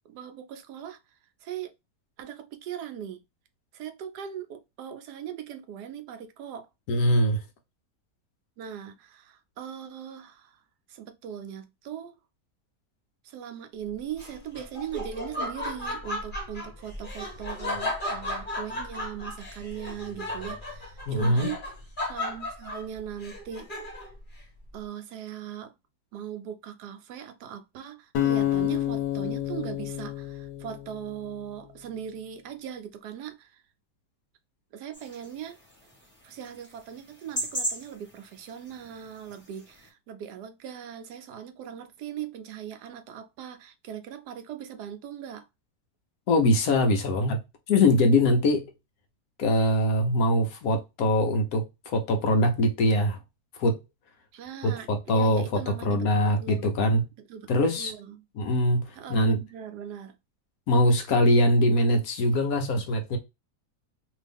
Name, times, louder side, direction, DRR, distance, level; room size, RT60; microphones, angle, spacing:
voice 1, 0.1-1.0 1.4-1.7 2.2-3.2 3.7-6.7 8.6-10.6 10.9-12.2 13.2-21.6 22.0-23.8 24.7-25.7 26.1-33.6 34.7-35.6 36.2-45.5 54.3-56.7 57.3-57.5 57.8-58.2 58.9-60.2, right 9 dB, 75° right, 1.2 m, -39 dB
voice 2, 6.9-7.4 21.1-21.5 46.3-47.4 47.7-48.7 49.4-53.2 53.6-53.8 54.6-57.0 57.5-57.9 58.4-59.4 60.7-63.2, left 1 dB, 65° left, 1.1 m, -23 dB
Laughter, 14.1-24.2, left 1 dB, 30° left, 1.3 m, -35 dB
sound 1, 28.1-31.3, left 12 dB, 85° left, 1.3 m, -29 dB
sound 2, 34.9-39.9, right 1 dB, 5° left, 1.3 m, -38 dB
3.0 x 2.7 x 3.4 m
omnidirectional pair, 1.8 m